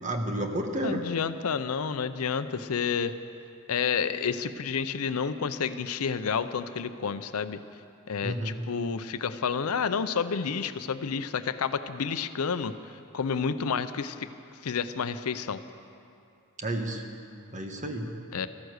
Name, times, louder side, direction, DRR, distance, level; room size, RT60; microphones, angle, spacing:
voice 1, 0.0-1.0 8.2-8.6 16.6-17.0 17.5-18.1, right 1 dB, 35° right, 3 dB, 1.3 m, -31 dB
voice 2, 0.8-3.1 3.7-7.6 8.1-14.3 14.6-15.6 18.3-18.5, left 6 dB, 80° left, 12 dB, 0.6 m, -30 dB
14.0 x 14.0 x 6.5 m, 2.5 s
head